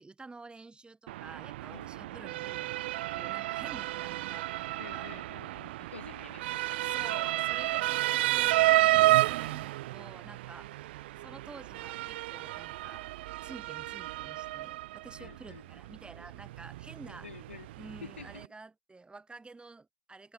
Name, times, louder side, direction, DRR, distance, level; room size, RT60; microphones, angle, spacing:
voice 1, 0.0-5.1 6.6-10.8 11.2-13.1 13.4-17.3 17.8-20.3, right 3 dB, 15° right, 7.1 m, -50 dB
Motor vehicle (road) / Siren, 1.1-18.5, right 17 dB, 65° right, 0.4 m, -31 dB
voice 2, 1.7-2.2 4.8-7.3 15.2-15.7 16.1-16.2 17.0-18.4, left 6 dB, 80° left, 7.7 m, -50 dB
figure-of-eight pair, 65°, 6 cm